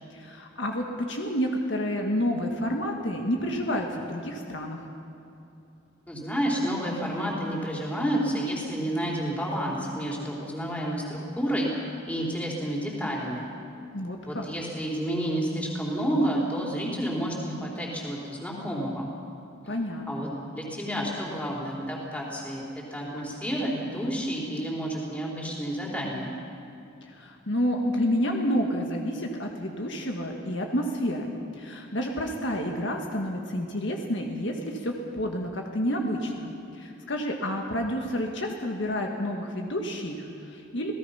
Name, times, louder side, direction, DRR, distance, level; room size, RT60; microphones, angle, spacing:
voice 1, 0.0-4.9 13.9-14.5 19.7-20.3 27.0-40.9, equal, 60° left, 2 dB, 1.7 m, -29 dB
voice 2, 6.1-11.7 12.1-13.5 14.3-19.1 20.1-26.3, equal, 5° left, -3 dB, 3.8 m, -30 dB
28.0 x 18.0 x 5.7 m, 2.7 s
head